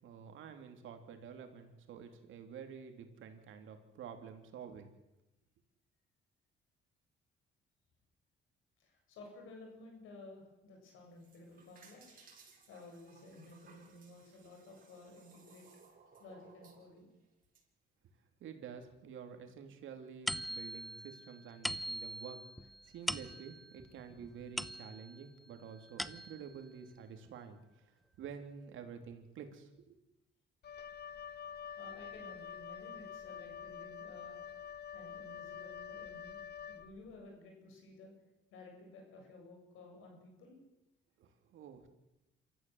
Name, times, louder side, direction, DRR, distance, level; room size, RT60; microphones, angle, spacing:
voice 1, 0.0-4.9 18.4-27.9 28.2-30.0 41.2-41.9, right 7 dB, 80° right, 6 dB, 3.2 m, -49 dB
voice 2, 8.8-12.2 12.7-15.7 16.2-17.1 31.8-34.4 34.9-36.4 36.7-38.1 38.5-40.6, left 2 dB, 90° left, 1 dB, 8.0 m, -54 dB
sound 1, 11.0-17.6, right 5 dB, 45° right, 7.2 m, -62 dB
sound 2, 20.3-25.3 25.7-26.6, equal, ahead, 0.9 m, -42 dB
Wind instrument woodwind instrument, 30.6-37.2, left 8 dB, 55° left, 1.0 m, -47 dB
26.5 x 14.0 x 7.9 m, 0.93 s
cardioid pair, 90°, 20 cm